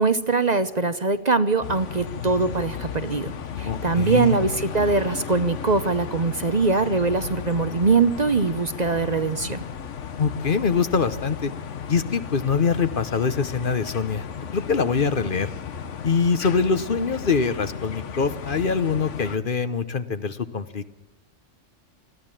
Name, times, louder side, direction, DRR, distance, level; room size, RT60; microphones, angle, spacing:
voice 1, 0.0-3.3 3.6-9.6, right 4 dB, 40° right, 11 dB, 0.9 m, -22 dB
sound 1, 1.6-19.4, left 7 dB, 85° left, 1.4 m, -35 dB
voice 2, 3.6-4.4 10.2-11.5 11.9-15.5 16.0-21.0, left 5 dB, 50° left, 12 dB, 1.0 m, -24 dB
20.5 x 14.5 x 8.9 m, 0.98 s
omnidirectional pair, 1.2 m